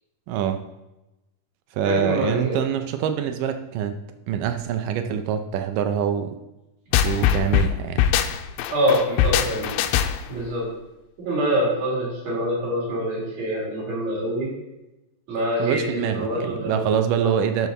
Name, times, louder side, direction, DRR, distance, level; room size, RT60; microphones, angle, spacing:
voice 1, 0.3-0.6 1.7-6.4 7.0-8.1 15.6-17.7, right 9 dB, 80° right, 7 dB, 2.0 m, -25 dB
voice 2, 1.8-2.6 8.7-9.7 10.3-10.6 11.2-14.5 15.3-17.4, equal, 50° right, -5 dB, 4.7 m, -25 dB
sound 1, 6.9-10.4, left 10 dB, 90° left, 2.4 m, -21 dB
12.0 x 5.9 x 4.1 m, 0.97 s
omnidirectional pair, 4.2 m